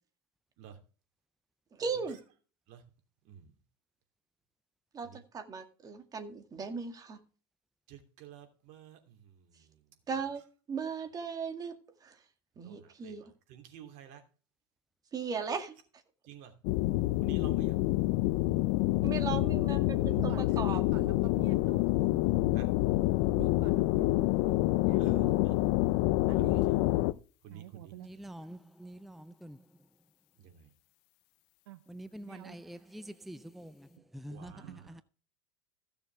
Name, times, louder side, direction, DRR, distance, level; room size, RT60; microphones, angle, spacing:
voice 1, 1.7-2.2 4.9-7.2 10.1-10.4 10.7-12.2 12.6-13.2 15.1-15.8 19.0-20.8, right 5 dB, 25° right, 2.1 m, -37 dB
voice 2, 7.9-9.8 12.6-14.2 16.2-16.5 17.2-17.8 22.5-22.7 25.0-25.5 26.3-26.9 27.4-28.2 30.4-30.7 34.3-35.0, right 9 dB, 55° right, 2.9 m, -52 dB
sound 1, 16.6-27.1, left 18 dB, 60° left, 0.6 m, -27 dB
voice 3, 20.0-22.4 22.6-22.7 23.3-25.8 26.3-26.6 27.5-28.1 31.7-31.8 32.3-32.6 34.5-34.8, right 14 dB, 80° right, 0.7 m, -48 dB
voice 4, 28.0-29.6 31.9-35.0, right 1 dB, ahead, 0.5 m, -46 dB
15.5 x 6.8 x 3.4 m
hypercardioid pair, 105°, 14 cm